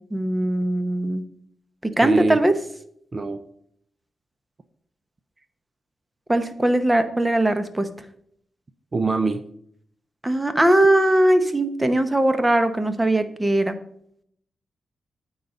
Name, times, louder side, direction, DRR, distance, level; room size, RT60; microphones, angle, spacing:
voice 1, 0.1-1.2 1.8-2.5 6.3-7.9 10.2-13.8, right 1 dB, 15° right, 10 dB, 0.9 m, -20 dB
voice 2, 2.0-2.4 3.1-3.4 8.9-9.4, right 3 dB, 35° right, 10 dB, 0.6 m, -24 dB
9.3 x 4.0 x 7.1 m, 0.67 s
cardioid pair, 105°, 0 cm